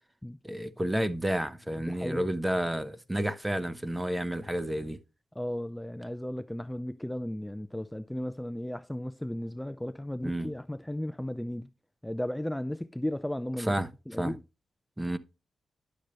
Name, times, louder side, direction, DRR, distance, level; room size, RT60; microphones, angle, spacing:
voice 1, 0.4-5.0 10.2-10.5 13.7-13.9 14.2-14.3 15.0-15.2, right 1 dB, 10° right, 0.8 m, -30 dB
voice 2, 1.8-2.3 5.3-11.7 12.0-14.4, left 1 dB, 5° left, 0.3 m, -35 dB
10.5 x 6.4 x 3.2 m
cardioid pair, 80°, 0 cm